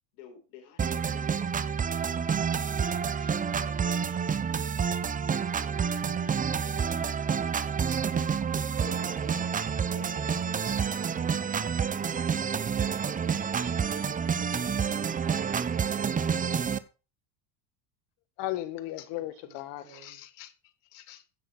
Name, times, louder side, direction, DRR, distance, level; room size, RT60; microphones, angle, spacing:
voice 1, 0.1-1.8 2.7-4.1 6.5-7.4 9.9-10.5 13.8-15.2, left 8 dB, 75° left, 4.5 m, -53 dB
sound 1, 0.8-16.8, right 6 dB, 15° right, 0.7 m, -29 dB
voice 2, 8.7-10.8 15.1-16.4 19.1-20.2, right 5 dB, 55° right, 5.9 m, -50 dB
voice 3, 18.4-21.2, left 14 dB, 55° left, 1.8 m, -37 dB
15.5 x 6.5 x 4.5 m
supercardioid pair, 110°, 50 cm